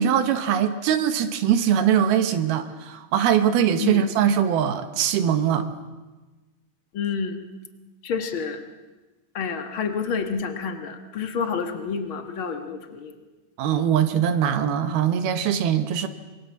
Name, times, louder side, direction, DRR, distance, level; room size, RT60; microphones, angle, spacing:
voice 1, 0.0-5.7 13.6-16.1, right 9 dB, 75° right, 8 dB, 3.0 m, -22 dB
voice 2, 6.9-7.4 8.0-8.6 9.3-13.1, left 5 dB, 70° left, 6 dB, 1.2 m, -28 dB
26.0 x 23.0 x 7.2 m, 1.2 s
omnidirectional pair, 4.6 m